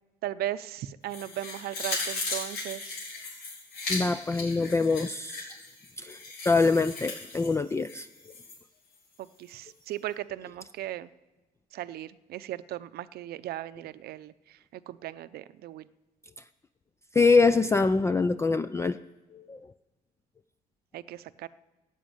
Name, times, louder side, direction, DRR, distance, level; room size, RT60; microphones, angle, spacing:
voice 1, 0.2-3.0 9.2-11.1 11.7-14.3 14.7-15.8 20.9-21.5, right 13 dB, 65° right, 14 dB, 0.6 m, -37 dB
sound 1, 1.1-8.6 8.9-9.0, left 3 dB, 85° left, 6.1 m, -37 dB
voice 2, 3.9-5.5 6.0-6.2 6.5-8.1 17.1-19.0 19.3-19.6, left 4 dB, 15° left, 13 dB, 0.4 m, -24 dB
14.0 x 8.2 x 8.9 m, 1.2 s
cardioid pair, 110°, 17 cm